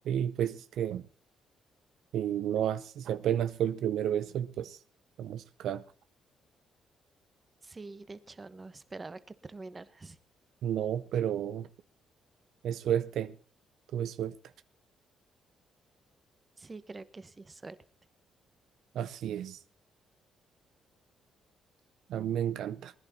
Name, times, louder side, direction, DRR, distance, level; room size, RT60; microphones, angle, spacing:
voice 1, 0.1-1.0 2.1-4.8 5.2-5.8 10.6-11.7 12.6-13.3 13.9-14.3 18.9-19.6 22.1-22.9, right 10 dB, 80° right, 0.6 m, -31 dB
voice 2, 7.6-10.2 16.6-17.8, right 3 dB, 25° right, 1.1 m, -45 dB
20.0 x 11.0 x 4.2 m
cardioid pair, 90°, 0 cm